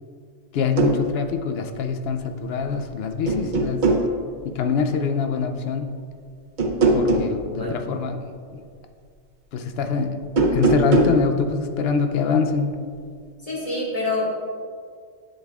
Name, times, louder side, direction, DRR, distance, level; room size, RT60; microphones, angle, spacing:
voice 1, 0.5-3.8 4.4-5.9 6.9-8.3 8.5-8.6 9.5-10.3 10.5-12.8, left 5 dB, 65° left, 6 dB, 0.8 m, -24 dB
sound 1, 0.6-1.0 2.5-2.9 3.3-4.1 6.6-7.3 10.2-11.2, right 3 dB, 50° right, 0.8 m, -20 dB
voice 2, 13.4-14.4, left 2 dB, 30° left, -6 dB, 1.9 m, -26 dB
10.0 x 6.5 x 2.4 m, 2.1 s
omnidirectional pair, 1.2 m